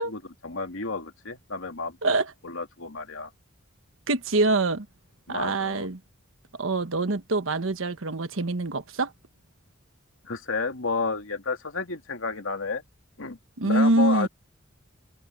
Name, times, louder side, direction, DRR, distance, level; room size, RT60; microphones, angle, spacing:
voice 1, 0.0-2.2 2.4-3.3 5.3-5.9 10.2-12.8 13.2-13.4 13.6-14.3, left 4 dB, 85° left, 2.6 m, -31 dB
voice 2, 4.1-4.9 5.3-6.0 6.6-9.1 13.6-14.3, right 2 dB, 85° right, 1.3 m, -24 dB
open air
head